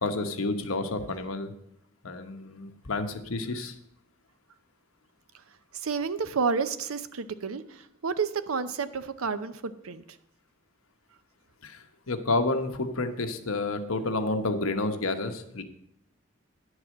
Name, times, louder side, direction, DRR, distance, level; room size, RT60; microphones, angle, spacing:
voice 1, 0.0-1.5 2.0-3.8 11.6-15.6, left 2 dB, 85° left, 7 dB, 1.0 m, -30 dB
voice 2, 5.7-10.0, right 5 dB, 90° right, 12 dB, 0.6 m, -30 dB
10.5 x 4.8 x 7.5 m, 0.75 s
head